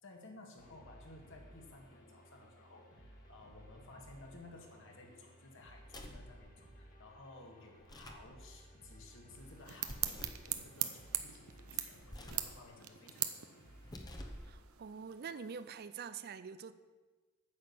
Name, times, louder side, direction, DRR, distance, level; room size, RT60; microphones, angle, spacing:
voice 1, 0.0-13.5, left 2 dB, 65° left, 1 dB, 2.0 m, -56 dB
sound 1, 0.6-14.5, right 1 dB, 40° left, 2.0 m, -59 dB
sound 2, 5.8-6.3 7.8-8.3 9.8-10.5 12.0-12.5 13.8-14.5, left 1 dB, 20° left, 1.0 m, -48 dB
sound 3, 9.3-15.7, right 12 dB, 85° right, 0.8 m, -42 dB
voice 2, 14.5-16.7, right 6 dB, 50° right, 13 dB, 0.5 m, -45 dB
9.5 x 6.3 x 8.5 m, 1.4 s
head